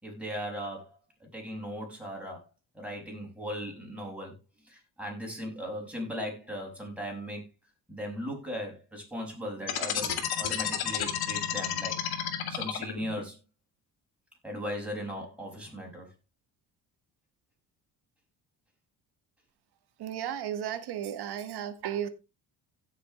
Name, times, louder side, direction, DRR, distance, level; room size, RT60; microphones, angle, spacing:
voice 1, 0.0-2.4 2.7-4.4 4.7-7.4 7.9-12.0 12.5-13.4 14.4-16.1, equal, 5° right, 5.9 m, -38 dB
sound 1, 9.6-13.2, left 9 dB, 65° left, 2.3 m, -31 dB
voice 2, 20.0-22.1, right 9 dB, 75° right, 1.7 m, -34 dB
16.5 x 6.7 x 3.1 m
cardioid pair, 115°, 40 cm